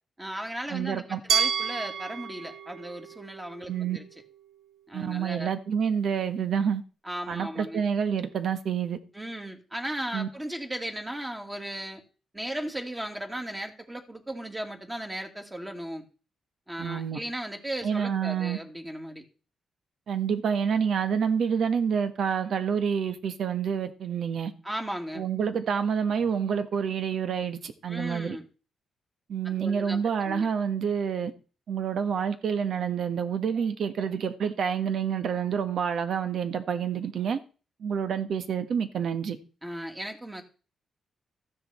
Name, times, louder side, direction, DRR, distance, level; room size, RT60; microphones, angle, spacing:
voice 1, 0.2-4.0 4.9-5.5 7.0-7.8 9.1-12.0 12.3-16.0 16.7-19.2 24.6-25.2 27.9-28.4 29.4-30.0 30.3-30.5 39.6-40.4, right 1 dB, 15° right, 2.4 m, -36 dB
voice 2, 0.7-1.2 3.7-4.0 4.9-6.8 7.3-9.0 10.1-10.3 16.8-17.2 17.8-18.6 20.1-24.5 25.1-28.4 29.3-31.3 31.7-37.4 37.8-39.4, right 7 dB, 65° right, 1.4 m, -28 dB
Glass, 1.3-4.2, right 7 dB, 80° right, 0.6 m, -30 dB
14.5 x 9.4 x 4.4 m
cardioid pair, 105°, 0 cm